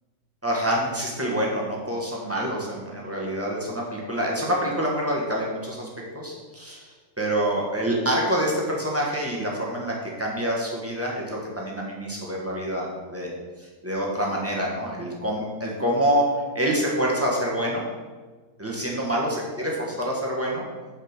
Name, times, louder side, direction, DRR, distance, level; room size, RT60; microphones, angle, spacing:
voice 1, 0.4-5.9 6.1-13.3 13.6-17.9 18.6-20.6, equal, 10° right, -4 dB, 1.3 m, -26 dB
5.6 x 5.2 x 6.5 m, 1.4 s
omnidirectional pair, 1.6 m